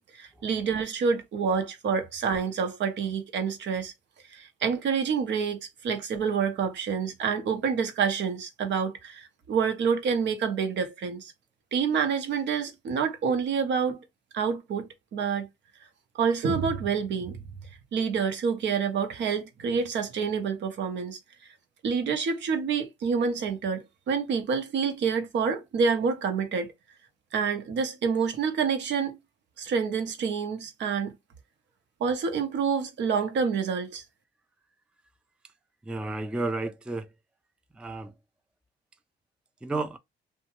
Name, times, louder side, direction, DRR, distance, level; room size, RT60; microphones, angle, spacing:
voice 1, 0.0-3.9 4.3-11.3 11.7-14.0 14.3-15.5 16.1-17.4 17.9-21.2 21.8-26.7 27.3-29.2 29.6-31.2 32.0-34.0, right 6 dB, 65° right, 0.7 m, -28 dB
voice 2, 35.8-37.1 37.7-38.1 39.6-40.0, right 2 dB, 5° right, 0.3 m, -32 dB
2.7 x 2.2 x 3.0 m
cardioid pair, 90°, 20 cm